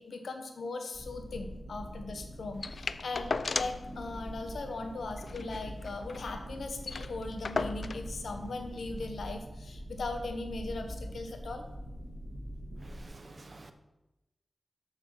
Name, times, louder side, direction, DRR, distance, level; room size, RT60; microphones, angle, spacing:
voice 1, 0.0-11.6, left 3 dB, 80° left, 1.1 m, -39 dB
sound 1, 0.9-13.1, equal, 20° left, 2.9 m, -43 dB
sound 2, 2.6-3.9 4.2-4.3 4.6-4.8 5.2-6.3 6.6-6.7 6.8-8.1 9.0-9.1, left 4 dB, 65° left, 0.3 m, -36 dB
voice 2, 12.8-13.7, right 2 dB, 45° right, 0.9 m, -49 dB
6.8 x 6.6 x 5.4 m
cardioid pair, 45°, 0 cm